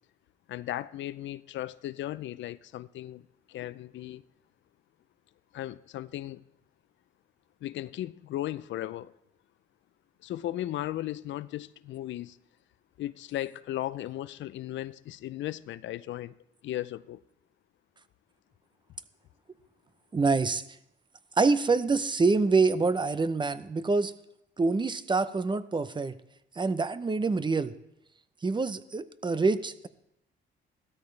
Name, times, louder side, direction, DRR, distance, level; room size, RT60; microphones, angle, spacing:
voice 1, 0.5-4.2 5.5-6.4 7.6-9.1 10.2-12.4 13.0-16.3 16.6-17.2, left 14 dB, 70° left, 0.5 m, -36 dB
voice 2, 20.1-20.6 21.4-24.1 24.6-26.2 26.6-27.7 28.4-29.9, right 4 dB, 25° right, 0.7 m, -26 dB
16.0 x 13.0 x 3.3 m
cardioid pair, 90°, 20 cm